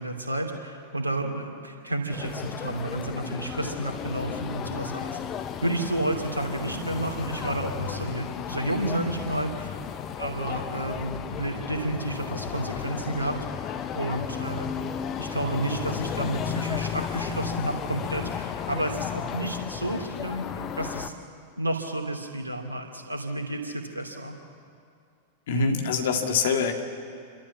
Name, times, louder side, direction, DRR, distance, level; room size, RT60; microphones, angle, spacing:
voice 1, 0.0-5.2 5.6-9.8 10.2-13.4 13.9-20.5 20.7-21.1 21.6-24.3 25.5-25.8, right 1 dB, 80° right, 2 dB, 2.7 m, -31 dB
sound 1, 2.1-21.1, left 8 dB, 30° left, 1.0 m, -34 dB
voice 2, 25.5-26.8, left 5 dB, 55° left, 4 dB, 2.1 m, -25 dB
28.5 x 13.0 x 7.3 m, 2.3 s
figure-of-eight pair, 95°, 0 cm